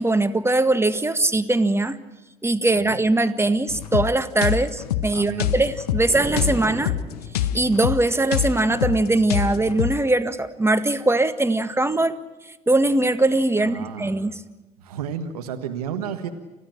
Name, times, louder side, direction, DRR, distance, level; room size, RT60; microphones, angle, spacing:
voice 1, 0.0-2.0 2.4-6.9 7.5-12.2 12.7-14.3, right 2 dB, 15° right, 10 dB, 1.8 m, -21 dB
sound 1, 3.7-10.0, left 11 dB, 85° left, 0.7 m, -26 dB
voice 2, 5.1-5.5 13.6-14.3 14.8-16.3, right 8 dB, 90° right, 7 dB, 1.4 m, -32 dB
sound 2, 6.0-7.7, right 5 dB, 30° right, 1.5 m, -34 dB
30.0 x 14.0 x 10.0 m, 1.1 s
hypercardioid pair, 60°, 19 cm